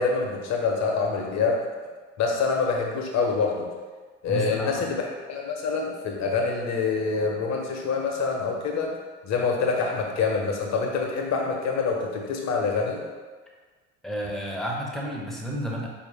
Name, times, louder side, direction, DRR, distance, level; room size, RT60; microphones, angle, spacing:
voice 1, 0.0-1.6 2.2-3.7 4.2-8.9 9.2-13.0, left 4 dB, 45° left, 0 dB, 0.9 m, -26 dB
voice 2, 4.3-4.9 14.0-15.9, right 1 dB, ahead, -2 dB, 0.8 m, -31 dB
4.7 x 2.7 x 3.3 m, 1.4 s
figure-of-eight pair, 60°, 39 cm